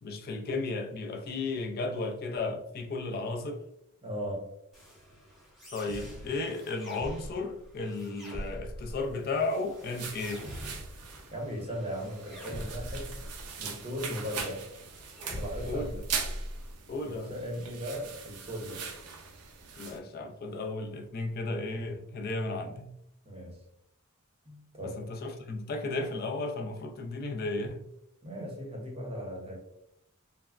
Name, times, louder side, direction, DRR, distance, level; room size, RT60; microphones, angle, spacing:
voice 1, 0.0-3.7 5.7-10.5 15.7-16.0 16.9-17.3 19.8-22.9 24.8-27.8, left 3 dB, 45° left, 0.4 m, -34 dB
voice 2, 4.0-4.5 11.3-13.2 13.6-14.7 15.4-15.9 17.0-18.9 23.2-23.6 24.4-25.1 28.2-29.6, equal, 25° right, 0.7 m, -37 dB
sound 1, 4.7-16.7, equal, ahead, 0.8 m, -43 dB
sound 2, 9.3-20.0, right 6 dB, 85° right, 0.5 m, -41 dB
3.3 x 2.1 x 2.3 m
head